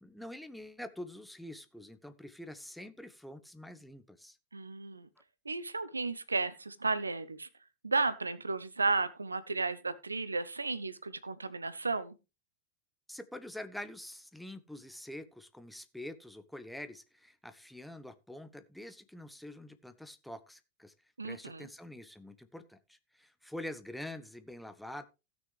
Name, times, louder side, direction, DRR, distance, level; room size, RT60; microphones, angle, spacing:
voice 1, 0.0-4.4 13.1-20.9 21.2-25.1, left 1 dB, ahead, 0.9 m, -46 dB
voice 2, 4.5-5.1 5.4-7.5 7.8-12.1 21.2-21.7, right 3 dB, 80° right, 0.7 m, -33 dB
16.5 x 6.3 x 3.2 m
figure-of-eight pair, 90°, 0 cm